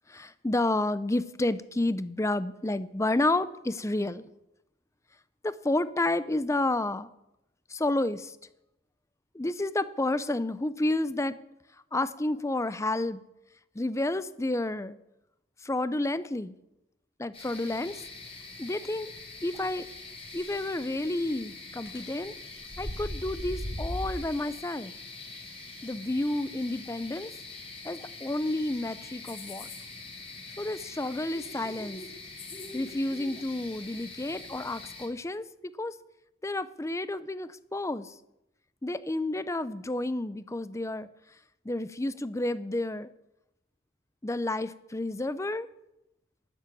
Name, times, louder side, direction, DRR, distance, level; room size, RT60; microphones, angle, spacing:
voice 1, 0.1-4.3 5.4-7.1 7.7-8.4 9.3-11.4 11.9-13.2 13.8-15.0 15.6-16.5 17.2-18.0 18.6-19.1 19.4-19.9 20.3-22.3 22.8-24.9 25.8-27.3 27.8-29.7 30.6-32.0 32.7-35.9 36.4-38.1 38.8-41.1 41.6-43.1 44.2-45.7, left 2 dB, 15° left, 15 dB, 0.6 m, -30 dB
sound 1, 17.3-35.1, left 3 dB, 30° left, 3.0 m, -44 dB
sound 2, 21.9-22.1 22.6-24.2, equal, 80° left, 5.7 m, -35 dB
13.0 x 7.6 x 9.1 m, 0.87 s
head